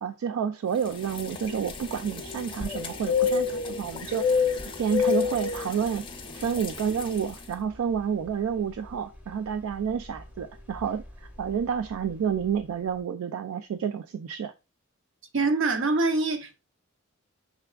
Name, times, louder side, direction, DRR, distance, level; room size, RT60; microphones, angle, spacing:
voice 1, 0.0-6.1 6.3-14.5, right 7 dB, 75° right, 0.3 m, -30 dB
sound 1, 0.8-7.4, left 6 dB, 25° left, 0.6 m, -29 dB
sound 2, 1.4-13.0, left 1 dB, 10° right, 0.8 m, -48 dB
voice 2, 15.3-16.6, right 3 dB, 60° right, 0.7 m, -24 dB
5.8 x 3.4 x 2.3 m
head